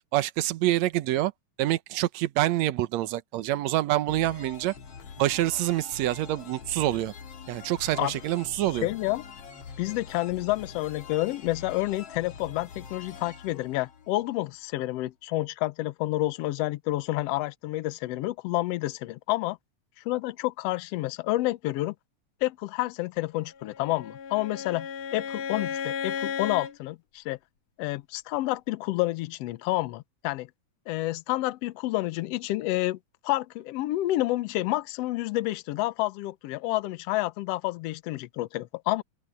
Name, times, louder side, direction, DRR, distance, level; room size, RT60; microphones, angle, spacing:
voice 1, 0.1-1.3 1.6-4.7 5.2-7.1 7.5-8.9, right 15 dB, 70° right, 2.0 m, -26 dB
sound 1, 4.1-14.7, left 6 dB, 55° left, 2.7 m, -45 dB
voice 2, 8.6-9.2 9.8-19.6 20.0-21.9 22.4-27.4 27.8-30.5 30.9-33.0 33.2-39.0, left 17 dB, 70° left, 1.5 m, -29 dB
Bowed string instrument, 23.6-26.8, left 7 dB, 90° left, 3.4 m, -34 dB
open air
omnidirectional pair, 3.6 m